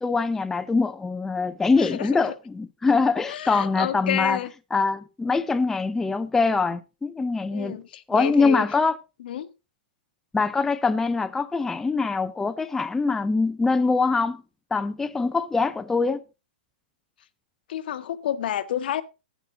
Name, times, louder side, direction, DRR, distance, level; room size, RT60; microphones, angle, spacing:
voice 1, 0.0-4.4 4.7-7.8 8.1-9.0 10.3-14.4 14.7-16.2, left 4 dB, 5° left, 0.4 m, -23 dB
voice 2, 1.8-2.2 3.3-4.5 7.5-8.6 9.2-9.5 17.7-19.0, left 10 dB, 65° left, 1.1 m, -29 dB
10.5 x 9.1 x 3.8 m
hypercardioid pair, 140°, 5 cm